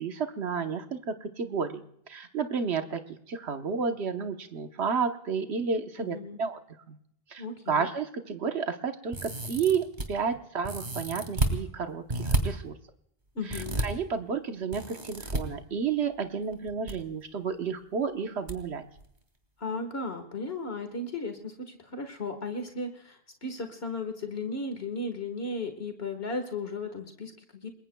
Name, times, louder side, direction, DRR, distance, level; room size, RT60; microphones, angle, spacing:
voice 1, 0.0-6.6 6.9-7.0 7.3-12.8 13.5-18.9, right 6 dB, 85° right, 6 dB, 1.3 m, -31 dB
voice 2, 6.0-6.4 7.4-7.9 13.4-13.8 19.6-27.7, left 3 dB, 70° left, 6 dB, 1.8 m, -35 dB
sound 1, 9.1-10.1 10.6-11.5 12.1-12.4 13.5-13.8 14.7-15.4 16.5-16.9 17.2-17.3 18.5-18.6 19.0-19.1, right 2 dB, 45° right, 2.5 m, -30 dB
28.5 x 21.0 x 2.3 m, 0.71 s
omnidirectional pair, 1.1 m